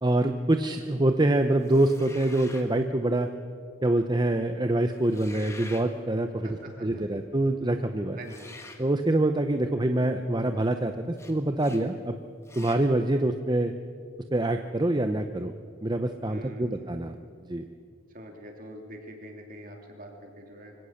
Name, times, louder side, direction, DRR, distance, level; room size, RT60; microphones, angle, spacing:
voice 1, 0.0-3.3 3.8-6.5 6.8-8.2 8.8-12.2 12.6-13.7 14.3-15.5 15.8-17.1 17.5-17.7, right 1 dB, 20° right, 7 dB, 0.6 m, -25 dB
sound 1, 1.6-2.7 5.0-5.9 8.2-8.8 11.2-11.3 11.6-11.8 12.4-12.8, left 2 dB, 15° left, 1.7 m, -46 dB
voice 2, 6.4-7.2 8.2-8.5 16.3-17.1 18.1-20.7, equal, 40° right, 2 dB, 3.2 m, -45 dB
25.0 x 16.5 x 6.6 m, 2.3 s
head